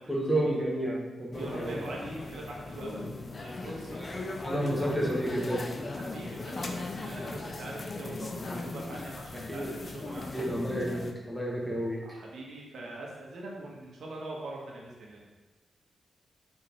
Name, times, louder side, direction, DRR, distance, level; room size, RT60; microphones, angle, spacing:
voice 1, 0.1-1.8 4.0-4.2 4.4-5.6 9.5-9.7 10.3-12.0, right 1 dB, 5° left, -3 dB, 1.6 m, -31 dB
sound 1, 1.3-11.1, left 3 dB, 40° left, 0.7 m, -38 dB
voice 2, 1.4-4.7 5.9-10.4 12.0-15.3, right 2 dB, 80° right, -3 dB, 1.6 m, -43 dB
6.3 x 4.4 x 4.6 m, 1.2 s
cardioid pair, 100°, 0 cm